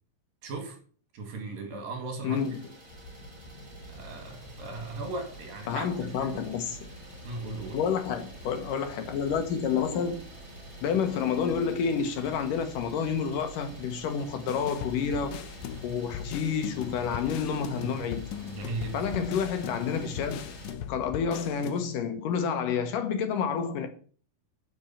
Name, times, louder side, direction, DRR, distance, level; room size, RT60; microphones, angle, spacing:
voice 1, 0.4-0.8 1.1-2.4 3.9-6.5 7.2-7.9 18.5-19.1, right 3 dB, 70° right, 4.1 m, -37 dB
voice 2, 2.2-2.7 5.7-6.8 7.7-10.2 10.8-15.4 15.8-18.3 18.9-20.4 20.9-23.9, left 6 dB, 70° left, 2.6 m, -29 dB
Idling, 2.3-20.7, right 1 dB, 25° right, 5.8 m, -50 dB
sound 1, 2.9-21.2, right 1 dB, 25° left, 3.2 m, -48 dB
sound 2, 14.5-22.1, left 11 dB, 85° left, 1.7 m, -39 dB
11.0 x 6.2 x 7.2 m
omnidirectional pair, 4.3 m